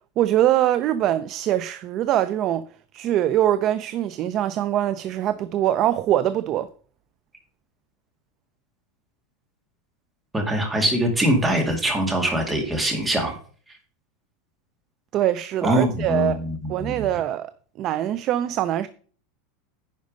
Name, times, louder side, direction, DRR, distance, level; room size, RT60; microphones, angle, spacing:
voice 1, 0.2-2.6 2.9-6.7 15.1-16.4 16.7-17.5 17.8-18.9, right 12 dB, 30° right, 0.4 m, -23 dB
voice 2, 10.3-13.4 15.6-17.1, right 1 dB, 10° right, 2.1 m, -23 dB
10.5 x 5.3 x 5.1 m
supercardioid pair, 165°, 0 cm